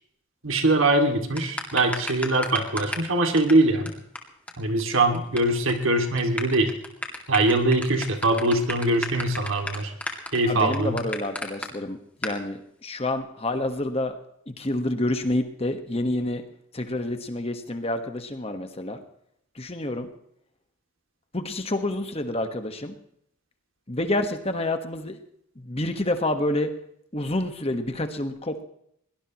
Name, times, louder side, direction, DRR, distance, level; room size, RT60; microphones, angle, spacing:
voice 1, 0.4-4.0 4.6-6.7 7.3-9.9 10.3-11.0, right 2 dB, 70° right, 5 dB, 2.4 m, -22 dB
sound 1, 1.4-3.1 3.4-3.5 3.9-4.0 4.2-4.3 4.5-4.6 4.8-5.4 5.7-5.8 6.2-11.7 12.2-12.4, left 1 dB, 5° left, 2.2 m, -32 dB
voice 2, 10.5-14.2 14.5-16.4 16.7-19.0 19.5-20.1 21.3-23.0 23.9-25.2 25.6-26.7 27.1-28.6, left 1 dB, 30° left, 7 dB, 1.4 m, -28 dB
22.0 x 19.0 x 3.1 m, 0.70 s
head